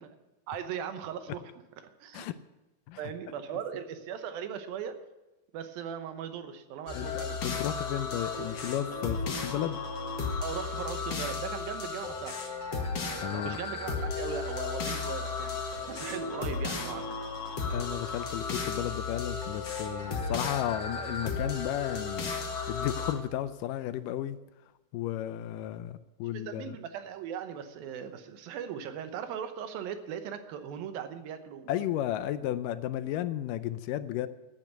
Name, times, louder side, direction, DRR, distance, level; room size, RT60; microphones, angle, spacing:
voice 1, 0.5-1.4 2.0-2.3 3.0-5.0 5.5-7.4 10.4-12.4 13.0-15.6 15.9-17.2 26.3-31.7, right 8 dB, 85° right, 9 dB, 2.8 m, -39 dB
voice 2, 6.9-9.8 13.2-13.6 17.7-22.3 22.7-24.4 24.9-26.8 31.7-34.3, left 12 dB, 80° left, 13 dB, 2.0 m, -33 dB
sound 1, 6.9-23.1, left 4 dB, 45° left, 1.6 m, -34 dB
12.0 x 8.7 x 8.0 m, 1.1 s
omnidirectional pair, 4.1 m